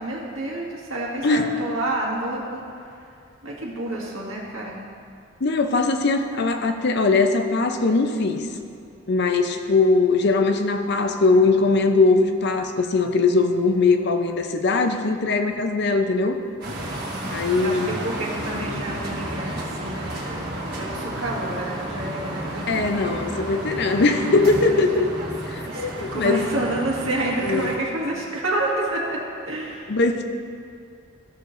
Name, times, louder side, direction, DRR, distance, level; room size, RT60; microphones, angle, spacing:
voice 1, 0.0-2.6 3.4-4.8 17.6-20.2 20.8-23.4 24.1-24.3 24.6-24.8 25.6-30.0, right 2 dB, 90° right, -4 dB, 1.8 m, -29 dB
voice 2, 5.4-8.5 9.1-16.4 17.3-18.0 22.7-25.1 25.5-26.4 27.4-27.7 29.9-30.2, left 3 dB, 60° left, 6 dB, 0.6 m, -20 dB
sound 1, 16.6-27.8, right 1 dB, 55° right, 1.5 m, -32 dB
14.0 x 6.6 x 2.6 m, 2.4 s
head